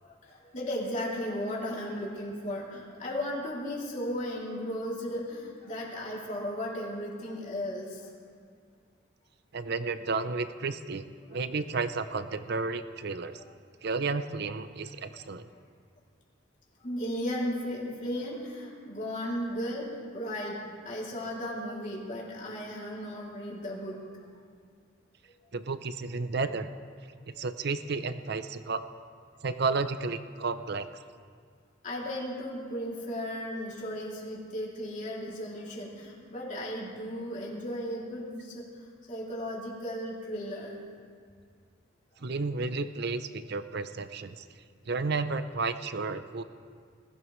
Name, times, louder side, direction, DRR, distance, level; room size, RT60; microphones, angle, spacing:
voice 1, 0.0-8.1 11.3-11.4 13.3-13.5 15.1-15.3 15.5-15.6 16.8-24.0 27.4-27.5 31.8-40.8, equal, 40° left, -5 dB, 3.0 m, -35 dB
voice 2, 9.5-11.0 11.3-13.4 13.8-15.5 25.5-26.7 27.3-28.8 29.4-30.9 42.2-44.5 44.9-46.4, right 4 dB, 55° right, 11 dB, 0.6 m, -32 dB
20.5 x 14.5 x 3.2 m, 2.1 s
head